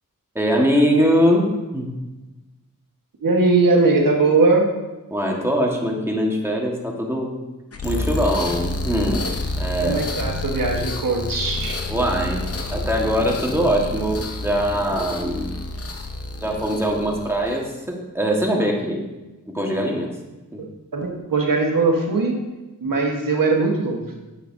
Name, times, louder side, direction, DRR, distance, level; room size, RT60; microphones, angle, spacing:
voice 1, 0.3-1.9 5.1-7.3 7.8-9.3 9.6-10.0 11.9-15.6 16.4-19.0 19.5-20.1 20.5-20.6, equal, 5° right, -1 dB, 1.3 m, -22 dB
voice 2, 3.2-4.7 9.8-11.8 20.6-20.7 20.9-22.4 22.8-24.2, right 3 dB, 80° right, 1 dB, 1.3 m, -20 dB
sound 1, 7.7-17.7, left 2 dB, 45° left, 0.7 m, -29 dB
8.8 x 6.5 x 2.6 m, 1.1 s
wide cardioid pair, 90°, 33 cm